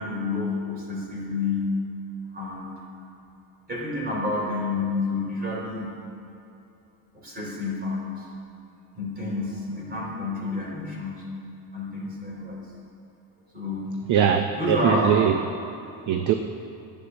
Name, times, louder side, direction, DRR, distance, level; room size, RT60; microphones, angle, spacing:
voice 1, 0.0-1.8 2.3-3.1 3.7-5.9 7.1-8.4 9.0-11.3 11.7-12.6 13.5-14.0 14.6-15.2, left 3 dB, 25° right, -3 dB, 3.3 m, -29 dB
voice 2, 14.1-15.3 16.1-16.3, right 9 dB, 50° right, 7 dB, 0.6 m, -21 dB
10.0 x 9.6 x 6.3 m, 2.7 s
cardioid pair, 145°, 39 cm